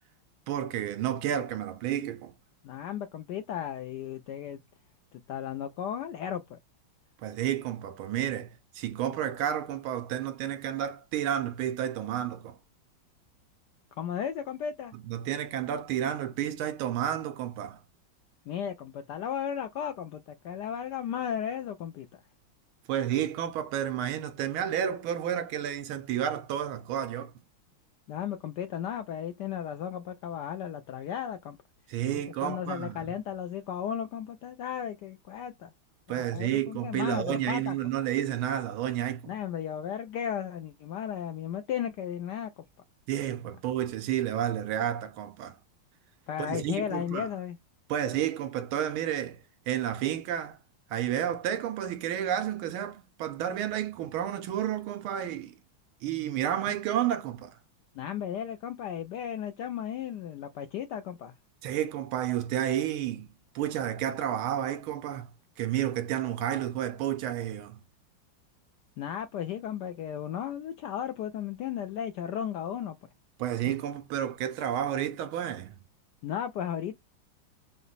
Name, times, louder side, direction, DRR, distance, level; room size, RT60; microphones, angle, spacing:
voice 1, 0.5-2.3 7.2-12.6 15.0-17.8 22.9-27.3 31.9-33.1 36.1-39.3 43.1-45.6 46.4-47.3 47.9-49.4 49.7-50.6 50.9-55.6 56.0-57.6 61.6-63.3 63.5-65.3 65.6-67.8 73.4-75.8, right 10 dB, 80° right, 1.5 m, -31 dB
voice 2, 2.6-4.6 5.3-6.6 14.0-14.9 18.5-22.2 28.1-31.6 32.4-35.7 36.2-37.7 39.3-42.5 46.3-47.6 57.9-61.3 69.0-73.0 76.2-77.0, left 9 dB, 80° left, 0.9 m, -35 dB
4.9 x 2.2 x 4.0 m
omnidirectional pair, 2.3 m